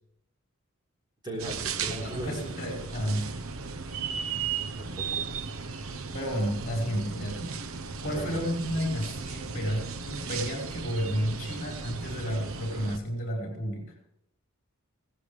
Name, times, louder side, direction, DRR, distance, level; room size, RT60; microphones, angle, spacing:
voice 1, 1.2-2.4 4.8-5.3 8.1-8.4, right 1 dB, 20° right, -2 dB, 3.8 m, -38 dB
sound 1, 1.4-13.0, right 5 dB, 70° right, 0.8 m, -36 dB
voice 2, 2.0-3.3 6.1-7.6 8.0-13.9, equal, 35° left, 0 dB, 4.9 m, -31 dB
17.5 x 15.0 x 3.3 m, 0.82 s
head